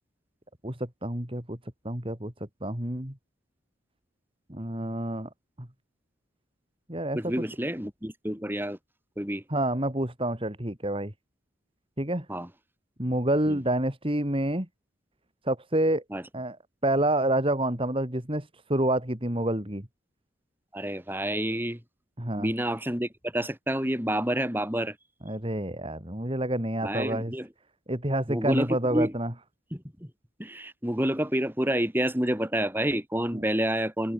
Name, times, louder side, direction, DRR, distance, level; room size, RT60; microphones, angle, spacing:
voice 1, 0.6-1.6 1.8-2.3 2.6-3.1 4.5-5.3 5.6-5.7 6.9-7.2 9.5-11.1 12.0-12.2 13.0-14.7 15.5-16.0 16.3-16.6 16.8-19.8 22.2-22.5 25.2-27.3 27.9-29.3 33.3-33.4, right 1 dB, 25° right, 3.1 m, -28 dB
voice 2, 7.1-8.8 9.2-9.4 12.3-12.5 13.5-13.6 16.1-16.2 20.7-21.8 22.4-24.9 26.8-27.5 28.3-29.1 29.7-30.1 30.4-34.1, right 1 dB, 10° right, 4.5 m, -29 dB
head